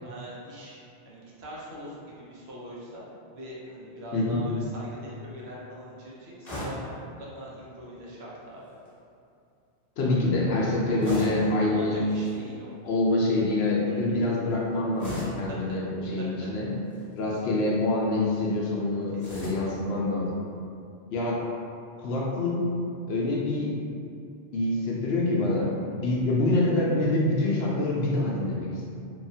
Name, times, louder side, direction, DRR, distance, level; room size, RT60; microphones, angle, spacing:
voice 1, 0.0-3.0 3.3-8.6 10.9-12.7 13.9-14.2 15.5-15.8 16.2-16.6 19.1-19.7, equal, 70° right, -6 dB, 0.9 m, -42 dB
sound 1, 6.4-6.9 8.6-8.9 11.0-11.5 12.1-12.4 15.0-15.5 16.8-17.2 19.2-19.7, equal, 40° left, 0.9 m, -37 dB
voice 2, 10.0-12.0 12.8-16.7 17.2-20.4 21.1-21.4 22.0-22.6 23.1-23.7 24.5-28.9, left 2 dB, 70° left, -4 dB, 0.8 m, -26 dB
2.9 x 2.4 x 2.6 m, 2.5 s
omnidirectional pair, 1.1 m